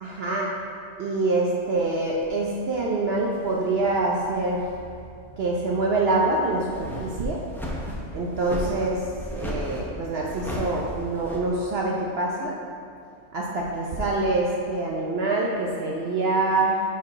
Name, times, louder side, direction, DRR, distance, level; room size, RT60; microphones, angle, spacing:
voice 1, 0.0-0.5 1.0-4.7 5.3-7.4 8.1-12.6 13.3-16.8, right 2 dB, 60° right, -2 dB, 0.8 m, -25 dB
sound 1, 2.2-2.4 3.2-3.8 4.3-4.4 6.5-11.4, left 1 dB, ahead, 0.6 m, -34 dB
5.8 x 4.8 x 4.8 m, 2.3 s
omnidirectional pair, 1.3 m